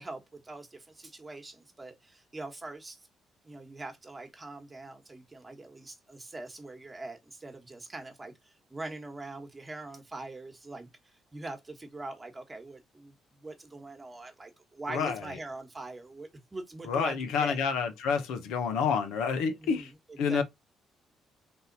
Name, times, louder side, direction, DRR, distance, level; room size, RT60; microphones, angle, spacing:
voice 1, 0.0-3.1 3.4-17.6 19.6-20.4, right 2 dB, 25° right, 1.3 m, -43 dB
voice 2, 16.8-19.9 20.2-20.4, left 6 dB, 80° left, 0.9 m, -28 dB
3.7 x 2.7 x 4.0 m
supercardioid pair, 60°, 0 cm